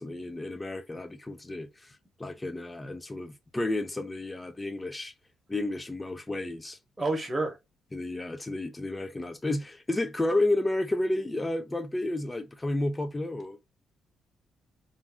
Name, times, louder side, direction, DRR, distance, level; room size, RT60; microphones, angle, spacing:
voice 1, 0.0-5.1 5.5-6.8 7.9-13.6, left 2 dB, 15° left, 0.3 m, -31 dB
voice 2, 7.0-7.6, right 2 dB, 20° right, 0.9 m, -28 dB
2.5 x 2.2 x 3.4 m
cardioid pair, 90°, 0 cm